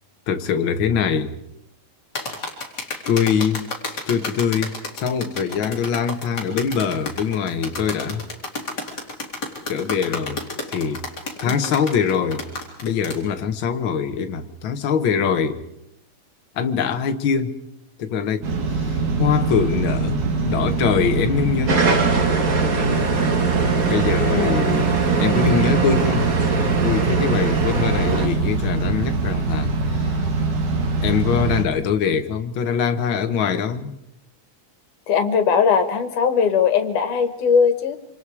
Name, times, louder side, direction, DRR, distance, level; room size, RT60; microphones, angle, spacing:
voice 1, 0.3-1.3 3.1-3.6 4.1-8.3 9.7-11.0 11.4-12.4 12.8-15.6 16.5-17.6 18.0-21.9 23.8-24.9 25.2-26.4 26.8-30.2 31.0-33.9, left 7 dB, 50° left, 1.7 m, -23 dB
sound 1, 2.2-13.2, left 3 dB, 30° left, 4.0 m, -31 dB
voice 2, 11.5-11.8 24.3-24.5 35.1-38.0, left 6 dB, 75° left, 3.1 m, -19 dB
sound 2, 18.4-31.7, right 3 dB, 70° right, 4.0 m, -23 dB
sound 3, 21.7-28.3, right 5 dB, 35° right, 1.6 m, -22 dB
27.0 x 26.5 x 4.9 m
omnidirectional pair, 3.6 m